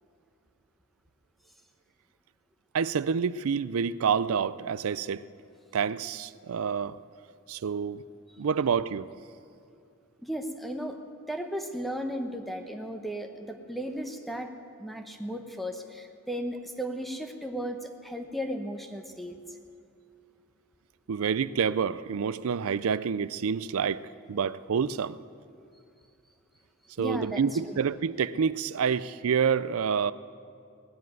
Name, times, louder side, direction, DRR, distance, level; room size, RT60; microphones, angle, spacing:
voice 1, 2.7-5.2 5.7-7.0 7.5-8.0 8.4-9.1 21.1-24.0 24.3-25.2 27.0-30.1, right 6 dB, 75° right, 0.4 m, -28 dB
voice 2, 10.2-11.0 11.3-14.5 14.8-19.6 27.0-27.8, equal, ahead, 0.9 m, -35 dB
18.5 x 7.6 x 9.3 m
head